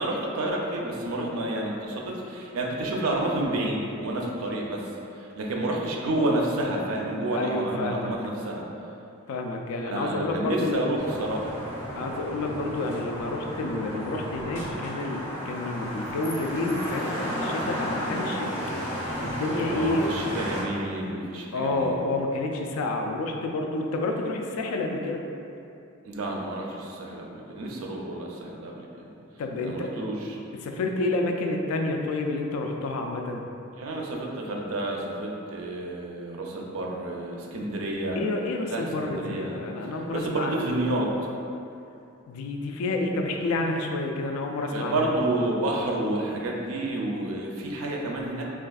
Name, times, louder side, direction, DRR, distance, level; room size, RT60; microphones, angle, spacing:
voice 1, 0.0-4.8 5.1-8.7 9.8-11.5 19.7-22.0 26.0-29.1 29.6-30.4 33.8-38.2 38.7-39.6 40.1-41.1 44.7-48.4, right 1 dB, 70° right, -1 dB, 0.4 m, -30 dB
voice 2, 7.3-8.1 9.3-10.9 11.9-18.6 19.2-20.4 21.5-25.2 29.4-29.9 30.5-33.4 38.1-40.6 42.3-45.1, left 2 dB, 80° left, 2 dB, 0.3 m, -29 dB
sound 1, 11.0-20.6, equal, 15° left, 0.6 m, -33 dB
3.4 x 2.4 x 2.3 m, 2.7 s
head